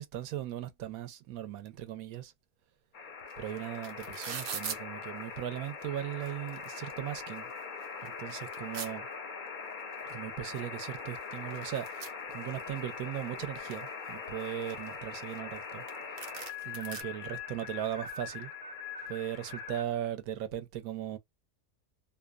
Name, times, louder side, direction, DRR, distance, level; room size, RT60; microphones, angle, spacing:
voice 1, 0.0-2.3 3.4-7.5 8.0-9.1 10.0-16.2 16.6-18.5 19.1-21.2, right 11 dB, 85° right, 1.1 m, -38 dB
sound 1, 2.9-19.8, left 5 dB, 55° left, 0.6 m, -42 dB
sound 2, 3.3-3.4 3.6-4.8 5.7-5.8 6.1-6.9 7.4-7.5 7.8-8.9 10.1-10.2 10.5-10.6 10.9-12.8 13.2-13.9 14.4-15.6 15.9-16.0 16.2-17.0, right 7 dB, 60° right, 0.6 m, -42 dB
2.8 x 2.0 x 2.2 m
omnidirectional pair, 1.5 m